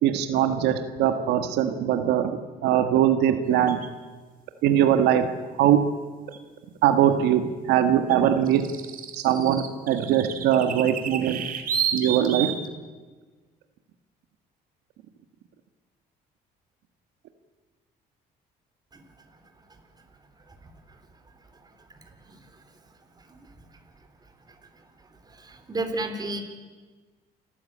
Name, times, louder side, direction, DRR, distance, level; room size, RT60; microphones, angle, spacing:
voice 1, 0.0-3.8 4.6-5.3 5.6-5.8 6.8-8.6 9.2-11.4 11.9-12.5, right 10 dB, 85° right, 8 dB, 1.6 m, -21 dB
sound 1, 3.7-3.9 6.3-6.4 8.1-12.7, right 8 dB, 55° right, 2.8 m, -31 dB
voice 2, 25.3-26.4, right 2 dB, 25° right, 6 dB, 3.6 m, -33 dB
29.5 x 14.5 x 8.8 m, 1.4 s
cardioid pair, 110°, 17 cm